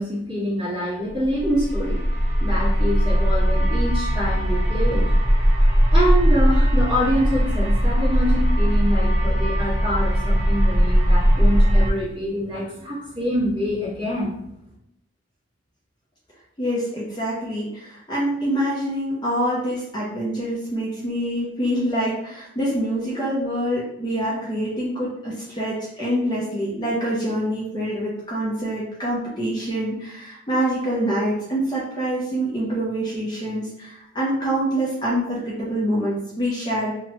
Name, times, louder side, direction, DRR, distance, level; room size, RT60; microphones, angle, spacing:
voice 1, 0.0-2.1 2.4-5.1 5.9-14.3, equal, 25° right, -8 dB, 1.2 m, -25 dB
sound 1, 1.2-11.9, equal, 40° right, 0.9 m, -19 dB
voice 2, 16.6-36.9, equal, 20° left, -7 dB, 0.5 m, -25 dB
2.9 x 2.1 x 2.8 m, 0.81 s
head